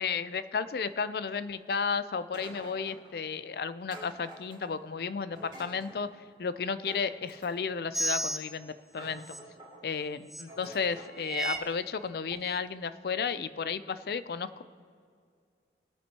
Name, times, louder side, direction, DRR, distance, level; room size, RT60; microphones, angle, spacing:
voice 1, 0.0-6.1 6.4-9.2 9.8-14.6, left 5 dB, 60° left, 13 dB, 0.4 m, -33 dB
sound 1, 2.3-3.1 3.9-4.9 5.4-6.0 6.9-7.8 8.5-8.6 8.9-9.8 10.5-11.1, right 1 dB, 25° right, 3.3 m, -48 dB
sound 2, 7.9-8.4 9.2-9.4 10.3-10.4 11.2-11.6 12.3-12.4, right 1 dB, ahead, 0.6 m, -32 dB
22.0 x 8.8 x 2.9 m, 2.2 s
head